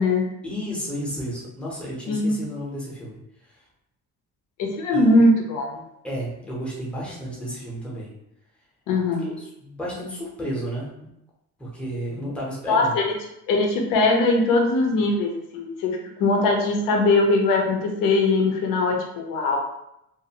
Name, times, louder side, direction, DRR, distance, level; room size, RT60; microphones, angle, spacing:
voice 1, 0.4-3.5 4.9-5.2 6.0-8.1 9.2-11.1 11.6-13.0, equal, 5° left, -5 dB, 0.7 m, -32 dB
voice 2, 2.1-2.4 4.6-5.8 8.9-9.4 12.7-13.1 13.5-19.6, left 2 dB, 65° left, 1 dB, 0.6 m, -21 dB
2.6 x 2.5 x 2.8 m, 0.83 s
cardioid pair, 150°, 35 cm